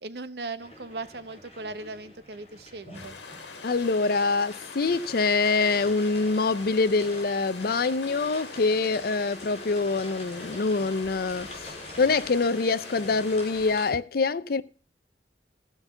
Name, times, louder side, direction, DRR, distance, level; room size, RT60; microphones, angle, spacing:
voice 1, 0.0-3.2, right 3 dB, 65° right, 0.8 m, -38 dB
sound 1, 0.6-13.9, left 1 dB, 35° left, 5.5 m, -44 dB
sound 2, 2.9-13.9, left 4 dB, 85° left, 1.5 m, -44 dB
voice 2, 3.6-11.5 12.0-14.6, left 4 dB, 55° left, 0.5 m, -25 dB
14.5 x 5.3 x 7.0 m
head